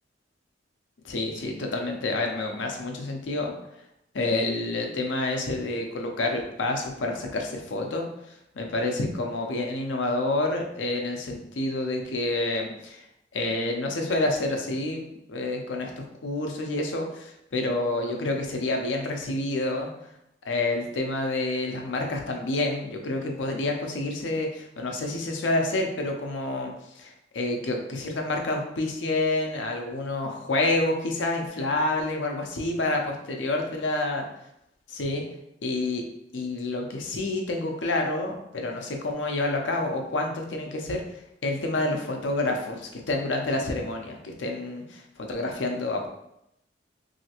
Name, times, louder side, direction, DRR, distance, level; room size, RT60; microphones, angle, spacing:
voice 1, 1.0-3.5 4.1-8.0 8.5-13.0 13.3-15.0 15.3-19.9 20.5-34.2 34.9-35.2 35.6-36.0 36.3-41.0 41.4-46.1, left 2 dB, 90° left, 2 dB, 0.6 m, -28 dB
3.1 x 2.7 x 2.8 m, 0.82 s
head